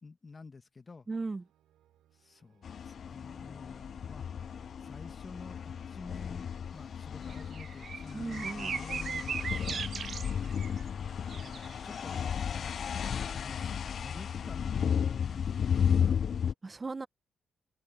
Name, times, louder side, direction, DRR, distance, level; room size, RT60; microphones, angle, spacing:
voice 1, 0.0-1.1 2.1-4.3 4.8-9.9 11.3-12.3 13.3-16.2, left 4 dB, 35° left, 1.8 m, -50 dB
voice 2, 1.1-1.4 8.1-8.7 16.6-17.1, right 3 dB, 30° right, 1.1 m, -36 dB
sound 1, 1.1-16.6, right 12 dB, 85° right, 5.7 m, -69 dB
sound 2, 2.6-16.5, left 7 dB, 60° left, 0.4 m, -34 dB
sound 3, 7.3-10.9 11.3-12.2, right 6 dB, 55° right, 0.8 m, -38 dB
supercardioid pair, 60°, 0 cm